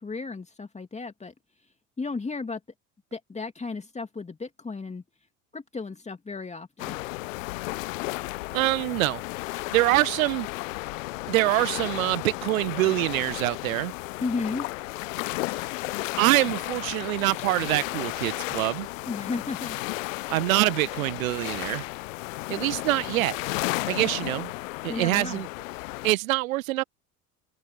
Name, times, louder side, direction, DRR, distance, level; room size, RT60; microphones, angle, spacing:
voice 1, 0.0-1.3 2.0-2.6 3.1-5.0 5.5-7.0 14.2-14.7 19.1-19.8 24.9-25.4, left 4 dB, 15° left, 2.5 m, -33 dB
sound 1, 6.8-26.1, left 22 dB, 60° left, 1.0 m, -33 dB
voice 2, 8.5-9.2 9.7-10.5 11.3-13.9 15.5-15.7 16.2-18.9 20.3-21.8 22.5-23.4 23.9-24.5 24.8-25.5 26.0-26.8, right 19 dB, 60° right, 1.3 m, -25 dB
figure-of-eight pair, 70°, 45 cm